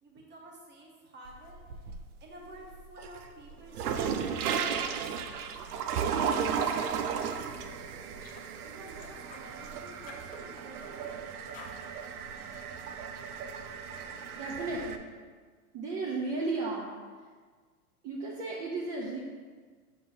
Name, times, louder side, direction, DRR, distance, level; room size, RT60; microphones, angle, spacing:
voice 1, 0.0-1.9 2.2-5.5 6.0-8.0 8.6-11.3, right 1 dB, 25° right, -1 dB, 1.3 m, -51 dB
sound 1, 1.3-2.2 2.6-15.0, right 7 dB, 80° right, 0.7 m, -35 dB
sound 2, 7.0-7.2 7.6-7.7 8.2-8.5 8.9-9.8 10.1-11.2 11.5-11.8, left 6 dB, 20° left, 0.5 m, -51 dB
voice 2, 14.3-15.0 15.7-16.9 18.0-19.2, right 3 dB, 40° right, -3 dB, 1.0 m, -34 dB
6.9 x 5.5 x 2.8 m, 1.5 s
hypercardioid pair, 120°, 44 cm